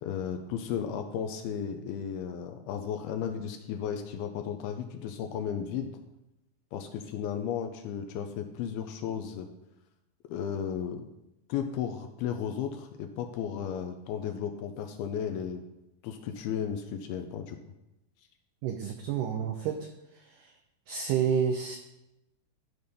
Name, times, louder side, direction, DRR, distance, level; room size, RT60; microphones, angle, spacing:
voice 1, 0.0-5.9 6.7-9.5 10.3-11.0 11.5-15.6 16.0-17.6, left 8 dB, 85° left, 5 dB, 2.5 m, -34 dB
voice 2, 18.6-20.5 20.9-21.8, right 7 dB, 85° right, 4 dB, 1.8 m, -30 dB
12.5 x 5.2 x 4.1 m, 0.90 s
omnidirectional pair, 4.6 m